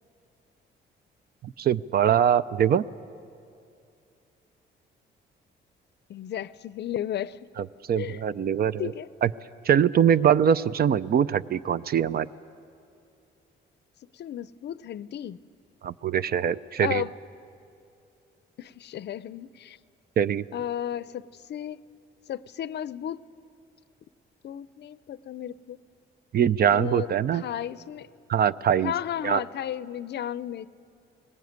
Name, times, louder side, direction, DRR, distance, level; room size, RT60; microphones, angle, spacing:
voice 1, 1.4-2.8 7.6-8.9 9.2-9.3 9.7-12.3 15.8-17.0 20.2-20.4 26.3-27.4 28.3-28.9 29.2-29.4, right 9 dB, 50° right, 17 dB, 0.5 m, -23 dB
voice 2, 6.1-7.5 8.0-8.2 8.8-9.1 14.1-15.4 16.8-17.1 18.6-19.8 20.5-21.8 22.3-23.2 24.4-25.8 26.7-28.1 28.8-30.7, left 10 dB, 60° left, 18 dB, 0.5 m, -34 dB
20.0 x 17.0 x 9.4 m, 2.5 s
cardioid pair, 90°, 20 cm